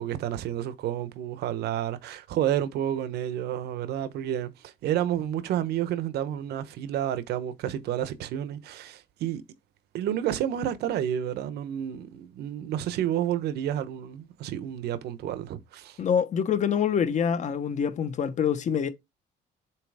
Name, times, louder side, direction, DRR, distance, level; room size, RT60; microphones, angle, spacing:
voice 1, 0.0-9.4 9.9-16.0, right 11 dB, 75° right, 1.0 m, -30 dB
voice 2, 16.0-18.9, left 7 dB, 45° left, 1.1 m, -25 dB
7.6 x 3.1 x 4.9 m
cardioid pair, 110°, 17 cm